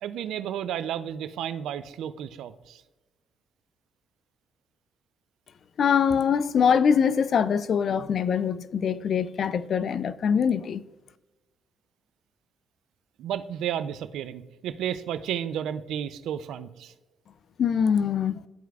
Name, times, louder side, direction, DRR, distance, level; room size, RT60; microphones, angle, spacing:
voice 1, 0.0-2.8 13.2-16.9, right 9 dB, 80° right, 0.4 m, -32 dB
voice 2, 5.8-10.8 17.6-18.5, left 7 dB, 60° left, 0.3 m, -23 dB
12.0 x 4.6 x 2.3 m
cardioid pair, 90°, 0 cm